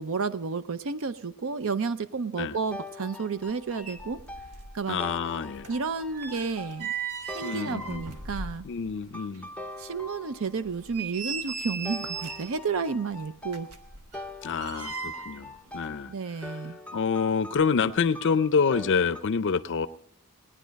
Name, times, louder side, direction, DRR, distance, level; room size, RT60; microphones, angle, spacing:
voice 1, 0.0-4.2 4.7-5.0 5.7-6.9 7.3-8.6 9.8-13.7 16.1-16.8, right 5 dB, 65° right, 13 dB, 0.5 m, -31 dB
sound 1, 2.7-8.5 9.1-10.8 11.8-19.2, left 2 dB, 5° left, 0.6 m, -43 dB
sound 2, 3.5-3.6 3.8-4.8 5.0-9.0 9.3-9.4 10.0-10.1 10.6-12.6 13.4-15.4 15.7-15.9, right 5 dB, 85° right, 1.3 m, -37 dB
voice 2, 4.9-5.7 7.4-8.0 8.6-9.5 14.4-16.1 16.4-16.6 16.9-19.9, left 5 dB, 55° left, 14 dB, 0.5 m, -27 dB
19.0 x 10.0 x 5.2 m, 0.65 s
head